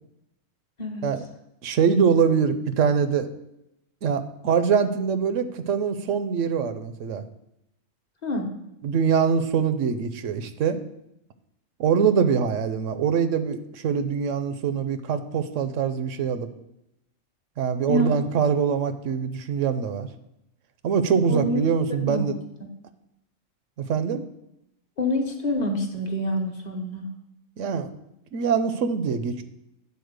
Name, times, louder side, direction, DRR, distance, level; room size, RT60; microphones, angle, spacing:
voice 1, 1.6-3.3 4.0-7.2 8.8-10.8 11.8-16.5 17.6-20.1 20.8-22.3 23.8-24.2 27.6-27.9 28.3-29.4, right 6 dB, 75° right, 11 dB, 1.0 m, -23 dB
voice 2, 17.9-18.2 21.3-21.6 22.0-22.3 25.0-27.1, left 1 dB, 35° left, 3 dB, 1.0 m, -26 dB
9.3 x 4.2 x 6.5 m, 0.84 s
omnidirectional pair, 1.3 m